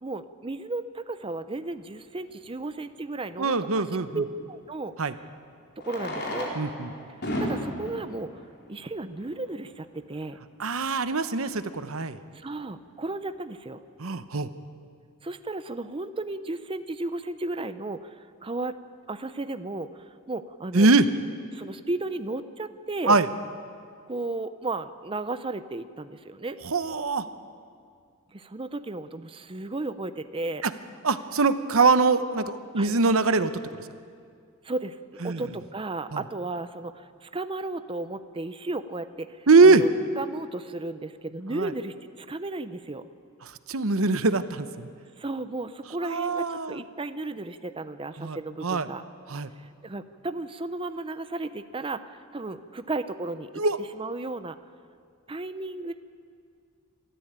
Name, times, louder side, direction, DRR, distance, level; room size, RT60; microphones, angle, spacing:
voice 1, 0.0-5.1 5.8-6.5 7.4-8.4 8.7-10.4 12.3-13.8 15.2-18.8 19.1-20.9 21.5-23.2 24.1-26.6 28.3-30.6 32.8-32.9 34.6-35.0 35.2-39.9 40.2-43.1 45.2-49.0 49.6-54.6 55.3-55.9, right 2 dB, 25° right, 11 dB, 0.6 m, -34 dB
Fireworks, 2.2-2.3 4.6-4.7 5.7-9.5 10.3-10.4 10.5-10.6 10.8-11.0 11.5-11.7, left 1 dB, 50° left, 4.2 m, -34 dB
voice 2, 3.4-4.2 5.0-5.1 6.5-6.9 10.6-12.2 14.0-14.5 20.7-21.1 23.1-23.3 26.6-27.3 31.0-33.6 35.2-35.4 36.1-36.2 39.5-39.8 41.5-41.7 43.7-44.9 46.0-46.8 48.2-48.9 49.3-49.5 53.5-53.8, right 3 dB, 70° right, 12 dB, 1.0 m, -22 dB
27.0 x 13.5 x 8.9 m, 2.3 s
head